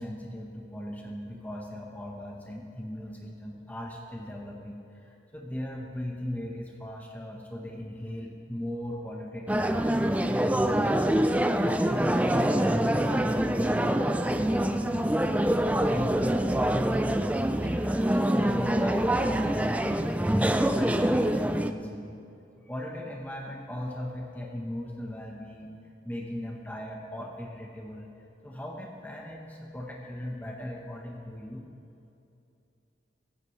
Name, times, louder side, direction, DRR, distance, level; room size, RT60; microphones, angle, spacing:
voice 1, 0.0-10.4 10.8-17.1 17.4-22.2 22.6-25.7 26.0-28.1 28.4-31.6, left 1 dB, 10° left, -1 dB, 1.0 m, -38 dB
sound 1, 9.5-21.7, right 1 dB, 10° right, 0.3 m, -25 dB
15.5 x 15.5 x 3.2 m, 2.7 s
head